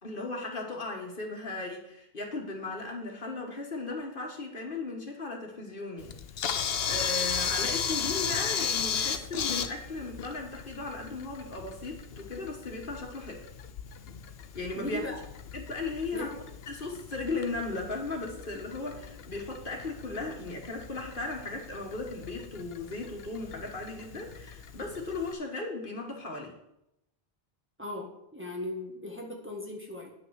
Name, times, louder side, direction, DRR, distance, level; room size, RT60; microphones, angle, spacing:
voice 1, 0.0-13.4 14.5-15.0 15.5-16.3 16.7-26.6, left 3 dB, 60° left, 1 dB, 1.7 m, -37 dB
Camera, 6.0-25.3, left 7 dB, 75° left, 0.9 m, -36 dB
voice 2, 14.7-15.2 16.1-16.4 27.8-30.1, left 1 dB, 10° right, -1 dB, 1.6 m, -38 dB
9.4 x 6.0 x 6.4 m, 0.82 s
omnidirectional pair, 1.0 m